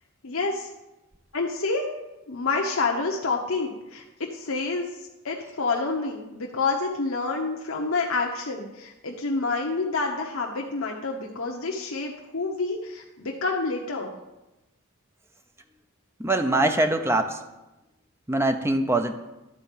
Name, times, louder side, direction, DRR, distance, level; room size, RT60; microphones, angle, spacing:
voice 1, 0.2-0.7 1.3-1.9 2.3-4.9 5.2-14.1, left 3 dB, 70° left, 0 dB, 1.0 m, -28 dB
voice 2, 16.2-17.4 18.3-19.1, right 2 dB, 10° right, 6 dB, 0.7 m, -23 dB
12.0 x 4.5 x 7.4 m, 0.99 s
head